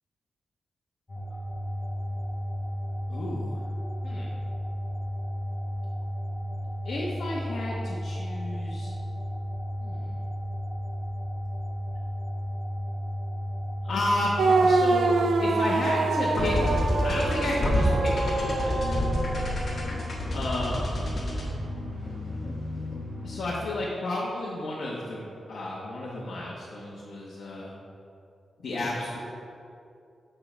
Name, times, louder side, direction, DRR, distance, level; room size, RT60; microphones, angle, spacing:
sound 1, 1.1-17.2, equal, 30° left, 1.2 m, -33 dB
voice 1, 3.1-3.6 4.0-4.3 6.8-8.9 9.8-10.2 13.8-16.6 17.0-18.7 20.3-21.0 23.2-27.7 28.6-29.2, left 2 dB, 65° left, -6 dB, 1.0 m, -32 dB
sound 2, 14.4-20.1, right 3 dB, 85° right, 0.5 m, -26 dB
sound 3, 16.3-23.7, left 1 dB, 45° left, 1.5 m, -29 dB
7.2 x 5.6 x 4.4 m, 2.6 s
wide cardioid pair, 155°, 0 cm